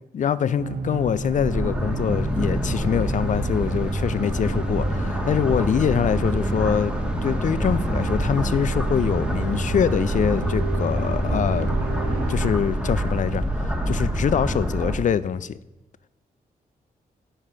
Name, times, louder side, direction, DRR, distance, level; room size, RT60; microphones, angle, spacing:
voice 1, 0.1-6.9 7.2-11.8 12.1-15.6, left 8 dB, 50° left, 0.4 m, -24 dB
sound 1, 0.6-12.5, right 3 dB, 90° right, 0.6 m, -33 dB
sound 2, 0.9-15.0, equal, 5° right, 1.2 m, -26 dB
5.7 x 4.9 x 4.5 m
cardioid pair, 60°, 16 cm